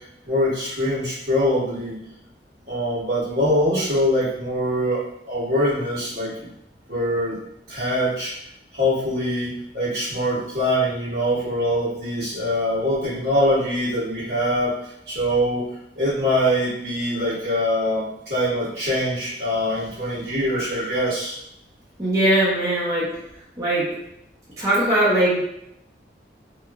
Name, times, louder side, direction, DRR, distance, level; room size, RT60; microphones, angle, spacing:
voice 1, 0.2-2.0 2.7-6.5 6.9-7.4 7.7-8.3 8.7-14.7 15.1-15.6 15.9-21.4, equal, 70° right, -10 dB, 1.5 m, -23 dB
voice 2, 22.0-23.1 23.6-23.9 24.6-25.4, right 1 dB, 20° right, -10 dB, 0.7 m, -20 dB
2.9 x 2.5 x 2.3 m, 0.76 s
head